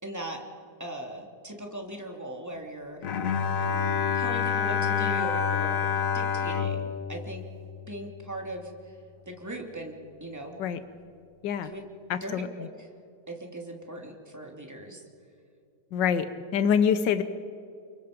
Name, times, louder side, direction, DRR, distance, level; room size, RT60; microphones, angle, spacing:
voice 1, 0.0-0.4 0.8-3.0 4.1-5.9 6.1-7.4 7.9-9.0 9.3-9.9 10.2-10.6 11.6-11.8 12.2-12.9 13.3-15.0, right 1 dB, 10° right, 1 dB, 2.6 m, -39 dB
Bowed string instrument, 3.0-8.3, left 7 dB, 55° left, 1.3 m, -28 dB
voice 2, 12.1-12.7 15.9-17.2, left 7 dB, 90° left, 12 dB, 1.5 m, -26 dB
29.0 x 24.0 x 5.1 m, 2.4 s
omnidirectional pair, 1.9 m